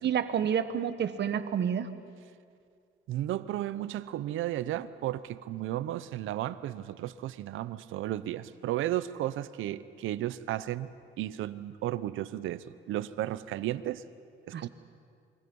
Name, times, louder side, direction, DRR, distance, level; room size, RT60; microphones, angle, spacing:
voice 1, 0.0-1.9 14.5-14.7, right 8 dB, 60° right, 11 dB, 1.4 m, -29 dB
voice 2, 3.1-10.9 11.2-14.0 14.5-14.7, right 13 dB, 85° right, 15 dB, 0.8 m, -34 dB
28.0 x 23.0 x 5.5 m, 2.3 s
cardioid pair, 90°, 20 cm